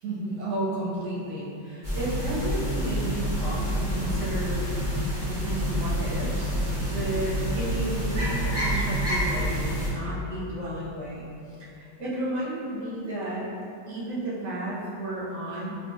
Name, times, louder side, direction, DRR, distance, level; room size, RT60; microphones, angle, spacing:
voice 1, 0.0-4.7 5.3-11.3 11.7-13.4 13.9-15.7, right 1 dB, 70° right, -8 dB, 1.4 m, -32 dB
sound 1, 1.8-9.9, equal, 30° right, 1.1 m, -28 dB
3.9 x 3.1 x 2.3 m, 2.6 s
omnidirectional pair, 1.9 m